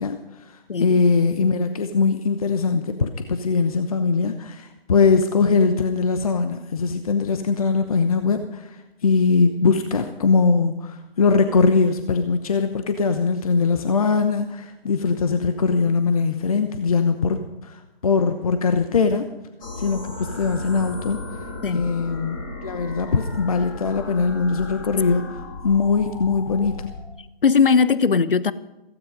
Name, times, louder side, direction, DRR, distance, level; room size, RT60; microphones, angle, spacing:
voice 1, 0.0-19.3 19.8-21.2 21.7-22.4 22.6-26.9, left 4 dB, 35° left, 8 dB, 0.9 m, -21 dB
sound 1, 19.6-27.0, left 2 dB, 20° left, 2.4 m, -35 dB
voice 2, 27.4-28.5, left 5 dB, 65° left, 17 dB, 0.9 m, -18 dB
16.0 x 16.0 x 5.4 m, 0.99 s
figure-of-eight pair, 160°, 30 cm